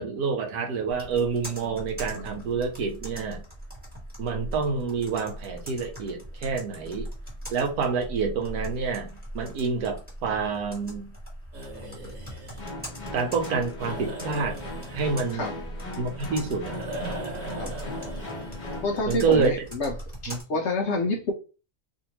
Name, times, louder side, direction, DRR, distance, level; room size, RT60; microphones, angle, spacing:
voice 1, 0.0-3.4 4.2-7.1 7.5-9.1 9.3-11.1 13.1-14.6 14.9-15.5 16.0-16.8 19.1-19.5 20.3-20.4, right 5 dB, 85° right, 1.2 m, -27 dB
Computer keyboard, 0.9-20.4, equal, 5° right, 1.4 m, -41 dB
sound 1, 11.5-19.7, right 1 dB, 60° right, 1.3 m, -41 dB
sound 2, 12.6-19.0, left 2 dB, 35° left, 1.0 m, -38 dB
voice 2, 18.8-19.9 20.2-21.3, left 2 dB, 65° left, 0.7 m, -27 dB
2.8 x 2.6 x 2.9 m
omnidirectional pair, 1.6 m